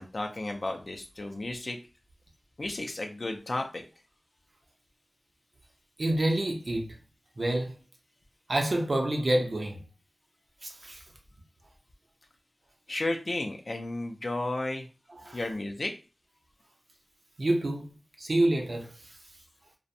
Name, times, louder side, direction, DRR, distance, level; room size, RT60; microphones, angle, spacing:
voice 1, 0.0-1.8 2.6-3.8 12.9-14.9 15.3-15.9, left 2 dB, 55° left, 0.4 m, -33 dB
voice 2, 6.0-7.0 7.4-7.7 8.5-9.8 10.6-11.0 15.1-15.4 17.4-17.9 18.2-18.9, right 1 dB, 55° right, 0.6 m, -27 dB
2.5 x 2.0 x 2.6 m
wide cardioid pair, 70°, 0 cm